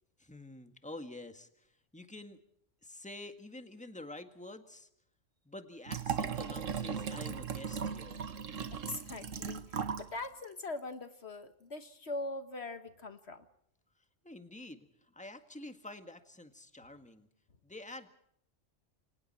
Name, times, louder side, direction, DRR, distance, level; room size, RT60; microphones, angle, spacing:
voice 1, 0.2-1.7 1.9-2.4 2.8-4.9 5.5-8.2 14.2-17.3 17.6-18.2, left 2 dB, 5° left, 7 dB, 1.8 m, -48 dB
Liquid, 5.9-10.1 10.4-10.5, right 7 dB, 85° right, 1.6 m, -37 dB
voice 2, 8.7-13.5, left 2 dB, 60° left, 9 dB, 1.6 m, -42 dB
29.5 x 25.0 x 4.4 m, 0.74 s
omnidirectional pair, 1.3 m